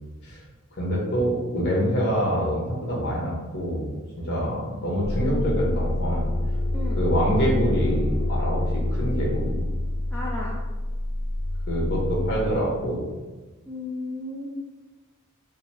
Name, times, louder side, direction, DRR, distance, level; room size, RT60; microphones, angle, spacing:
voice 1, 0.7-6.3 7.0-8.6 8.9-9.6 11.7-13.1, equal, 55° left, -3 dB, 1.1 m, -25 dB
sound 1, 5.0-12.5, left 1 dB, 75° left, 0.7 m, -27 dB
voice 2, 5.2-5.8 6.7-7.0 10.1-10.5 13.7-14.5, left 1 dB, 10° left, -5 dB, 0.5 m, -34 dB
3.9 x 2.0 x 4.2 m, 1.2 s
head